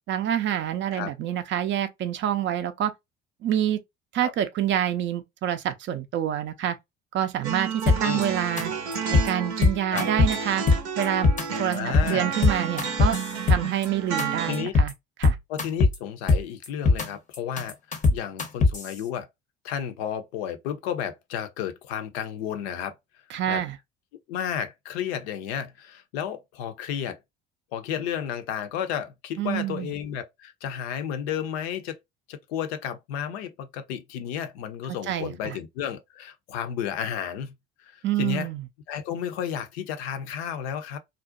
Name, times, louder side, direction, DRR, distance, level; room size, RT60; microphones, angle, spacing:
voice 1, 0.1-2.9 3.4-3.8 4.1-6.8 7.1-8.7 9.1-10.7 11.0-11.3 11.6-11.8 12.1-13.2 13.5-14.9 15.2-15.4 23.3-23.8 29.4-29.9 35.1-35.6 38.0-38.6, right 10 dB, 35° right, 0.4 m, -27 dB
sound 1, 7.4-14.6, right 6 dB, 80° right, 0.6 m, -31 dB
sound 2, 7.9-8.2 8.6-8.7 8.9-9.3 9.6-10.3 10.7-11.4 11.7-12.1 12.4-13.9 14.2-14.3 14.5-14.9 15.2-16.0 16.3-17.1 17.3-18.9, left 3 dB, 20° left, 0.6 m, -20 dB
voice 2, 11.7-12.3 14.5-14.7 15.5-19.3 19.6-22.9 23.5-23.6 24.3-27.2 27.7-32.0 32.3-37.5 37.8-38.5 38.9-41.0, left 9 dB, 65° left, 0.5 m, -32 dB
2.5 x 2.0 x 2.5 m
figure-of-eight pair, 55°, 34 cm